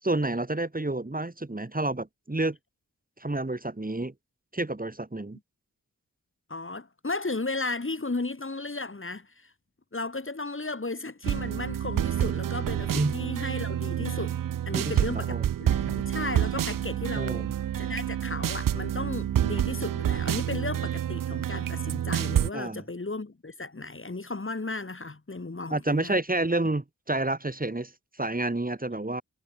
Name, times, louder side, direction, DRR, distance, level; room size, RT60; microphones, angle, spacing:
voice 1, 0.0-2.6 3.2-4.1 4.5-5.4 12.9-13.1 14.7-15.4 17.2-17.5 22.5-22.8 25.7-27.9 28.2-29.2, right 2 dB, 25° right, 3.8 m, -29 dB
voice 2, 6.5-9.5 9.9-14.4 14.7-17.5 17.8-26.1, left 3 dB, 40° left, 4.2 m, -35 dB
sound 1, 11.2-22.5, right 10 dB, 80° right, 0.5 m, -28 dB
wide cardioid pair, 65°, 32 cm